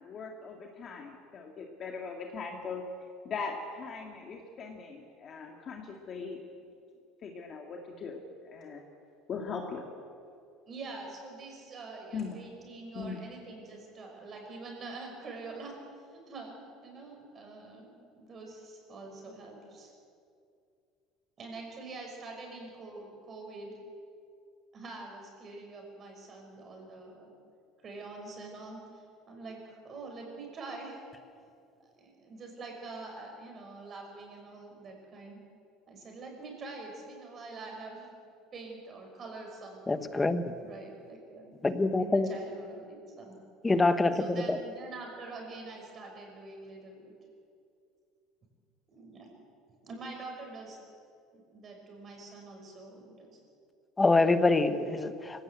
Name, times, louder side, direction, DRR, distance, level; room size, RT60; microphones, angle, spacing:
voice 1, 0.0-2.8 3.2-6.4 7.2-8.8 9.3-9.8 12.1-12.4 12.9-13.2, left 5 dB, 30° left, 1 dB, 1.9 m, -40 dB
voice 2, 10.7-15.7 16.1-16.5 16.8-19.9 21.4-23.8 24.7-27.3 27.8-31.0 31.8-35.4 35.9-38.1 38.5-40.1 40.6-41.6 41.9-43.4 44.1-47.1 48.9-49.3 49.8-50.8 51.3-53.3, right 3 dB, 25° right, 2 dB, 5.5 m, -45 dB
voice 3, 39.9-40.4 41.6-42.3 43.6-44.6 54.0-55.4, left 3 dB, 10° left, 10 dB, 1.0 m, -25 dB
25.0 x 17.0 x 8.1 m, 2.4 s
cardioid pair, 160°, 0 cm